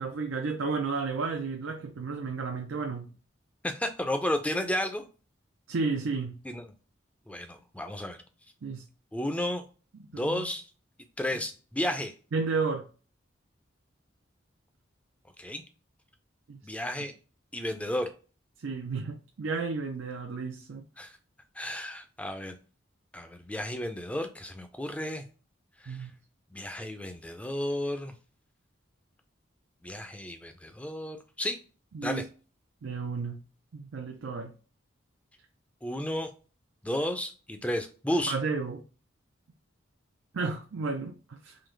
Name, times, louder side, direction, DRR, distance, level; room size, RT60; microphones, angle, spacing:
voice 1, 0.0-3.1 5.7-6.4 8.6-8.8 10.1-10.5 12.3-12.9 16.5-16.6 18.6-20.8 25.9-26.1 31.9-32.2 32.8-33.4 33.7-34.5 38.3-38.8 40.3-41.6, right 4 dB, 80° right, 0.5 m, -32 dB
voice 2, 3.6-5.0 6.4-6.6 7.3-8.2 9.1-9.6 10.1-10.6 11.2-12.1 15.4-15.6 16.6-17.1 17.5-18.1 21.0-21.1 21.6-22.6 23.1-25.3 25.8-26.1 26.5-28.1 29.8-31.6 32.0-32.2 35.8-36.3 36.8-38.4, left 1 dB, 5° left, 0.4 m, -32 dB
3.9 x 2.9 x 3.2 m
head